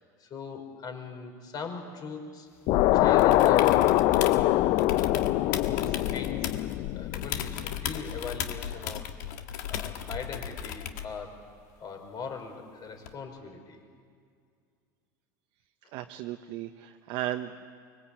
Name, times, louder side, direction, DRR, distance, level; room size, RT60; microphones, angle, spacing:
voice 1, 0.0-2.5 2.9-4.0 4.3-5.4 5.7-9.1 9.7-11.4 11.8-13.8, left 5 dB, 40° left, 4 dB, 5.1 m, -40 dB
sound 1, 2.7-7.9, left 15 dB, 60° left, 0.7 m, -24 dB
sound 2, 3.2-4.4 4.8-6.8 7.1-11.2 13.1-13.2, left 10 dB, 75° left, 1.6 m, -36 dB
voice 2, 15.9-17.7, right 13 dB, 60° right, 6 dB, 1.0 m, -35 dB
24.0 x 22.5 x 8.6 m, 2.2 s
hypercardioid pair, 95°, 10 cm